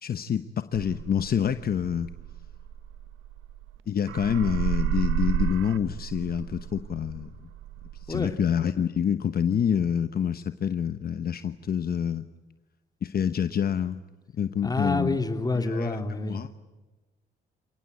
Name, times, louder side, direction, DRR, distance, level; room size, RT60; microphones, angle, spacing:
voice 1, 0.0-2.1 3.9-7.3 7.9-12.3 13.0-14.0 14.3-15.2 15.5-16.5, left 8 dB, 50° left, 11 dB, 1.0 m, -27 dB
sound 1, 0.7-3.8 4.1-8.3, right 11 dB, 90° right, 1.1 m, -31 dB
voice 2, 14.6-16.4, left 2 dB, 20° left, 7 dB, 2.9 m, -28 dB
29.5 x 18.0 x 9.2 m, 1.2 s
cardioid pair, 90°, 20 cm